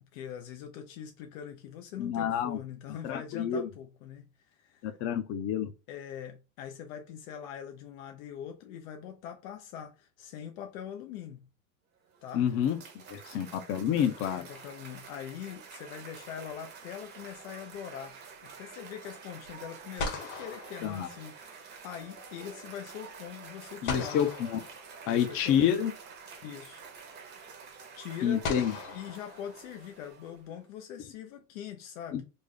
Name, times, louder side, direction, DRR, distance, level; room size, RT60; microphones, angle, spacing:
voice 1, 0.0-4.9 5.9-11.5 12.2-12.5 14.4-24.2 25.1-25.9 26.4-26.8 28.0-28.5 28.9-32.2, left 9 dB, 90° left, 0.7 m, -43 dB
voice 2, 2.0-2.6 3.0-3.7 4.8-5.7 12.3-12.8 13.1-14.4 20.8-21.1 23.8-24.6 25.1-25.9 28.2-28.7 32.1-32.2, left 9 dB, 35° left, 0.5 m, -28 dB
Cheering / Applause, 12.0-30.6, right 5 dB, 25° right, 0.7 m, -49 dB
sound 1, 14.5-15.4 19.4-19.5 20.0-21.7 23.9-25.5 26.8-26.9 28.4-30.1, left 4 dB, 55° left, 1.2 m, -40 dB
3.4 x 2.3 x 3.8 m
cardioid pair, 160°, 39 cm